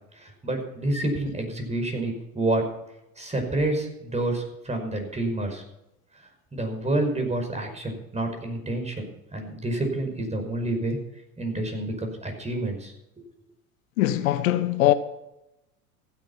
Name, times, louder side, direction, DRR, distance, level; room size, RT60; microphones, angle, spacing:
voice 1, 0.1-2.6 3.2-5.6 6.5-11.0 11.4-13.3, right 1 dB, 15° right, 5.5 m, -28 dB
voice 2, 14.0-14.9, left 14 dB, 70° left, 1.1 m, -21 dB
15.5 x 10.5 x 5.7 m
hypercardioid pair, 85°, 43 cm